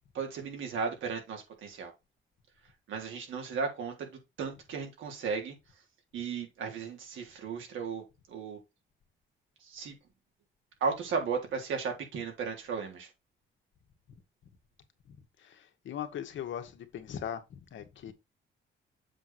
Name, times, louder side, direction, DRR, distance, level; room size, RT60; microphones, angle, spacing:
voice 1, 0.1-1.9 2.9-5.6 6.1-8.6 9.6-10.0 10.8-13.1, right 5 dB, 75° right, 3.5 m, -35 dB
voice 2, 15.4-17.4 17.7-18.1, left 9 dB, 70° left, 1.7 m, -39 dB
7.6 x 4.8 x 4.4 m
cardioid pair, 90°, 20 cm